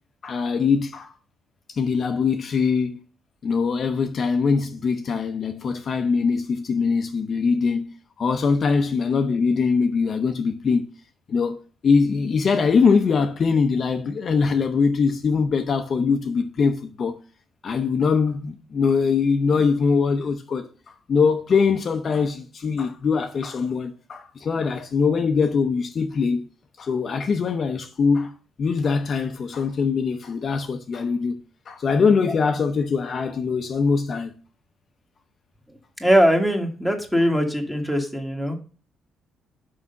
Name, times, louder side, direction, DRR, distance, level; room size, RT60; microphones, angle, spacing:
voice 1, 0.2-1.1 1.7-3.0 3.4-10.9 11.3-11.6 11.8-17.2 17.6-26.5 26.8-34.4, left 5 dB, 40° left, 0.7 m, -22 dB
voice 2, 36.0-38.5, equal, 5° right, 1.4 m, -21 dB
6.1 x 4.9 x 5.3 m
cardioid pair, 145°, 0 cm